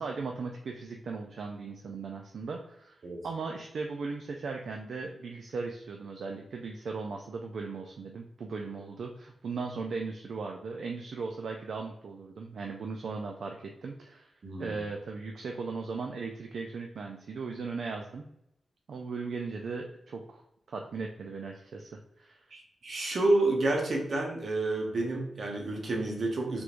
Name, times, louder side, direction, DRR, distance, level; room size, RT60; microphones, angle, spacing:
voice 1, 0.0-18.2 18.9-20.4 20.7-22.4, right 4 dB, 75° right, 2 dB, 0.3 m, -38 dB
voice 2, 14.4-14.8 22.5-26.6, right 2 dB, 60° right, 0 dB, 0.8 m, -29 dB
3.5 x 3.1 x 2.4 m, 0.80 s
wide cardioid pair, 95°, 0 cm